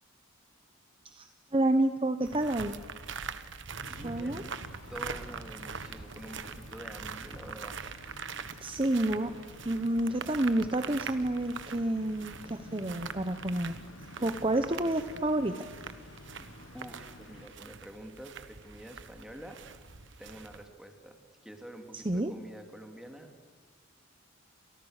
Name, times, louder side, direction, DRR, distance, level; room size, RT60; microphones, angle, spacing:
voice 1, 1.0-2.8 4.0-4.4 8.6-9.4 9.6-13.8 14.2-15.7 21.9-22.3, right 1 dB, 25° right, 8 dB, 0.9 m, -29 dB
sound 1, 2.2-20.6, right 5 dB, 60° right, 1.3 m, -43 dB
sound 2, 3.7-17.5, left 2 dB, 65° left, 1.4 m, -52 dB
voice 2, 3.9-4.5 4.9-7.8 16.7-19.6 20.2-23.3, equal, 5° right, 4 dB, 2.7 m, -47 dB
30.0 x 28.0 x 6.6 m, 1.4 s
head